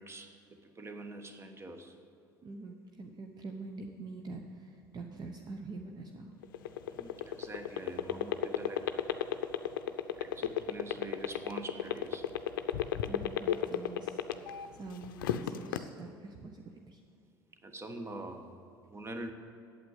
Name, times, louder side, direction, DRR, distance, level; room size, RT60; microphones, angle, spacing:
voice 1, 0.0-1.9 6.9-9.0 10.2-12.3 17.6-18.5 18.9-19.3, right 2 dB, 25° right, 7 dB, 1.2 m, -44 dB
voice 2, 2.4-6.3 13.1-17.0, right 3 dB, 40° right, 3 dB, 0.9 m, -45 dB
sound 1, 6.4-14.7 15.0-15.8, left 12 dB, 75° left, 0.5 m, -31 dB
8.7 x 8.0 x 8.4 m, 2.5 s
hypercardioid pair, 65°, 11 cm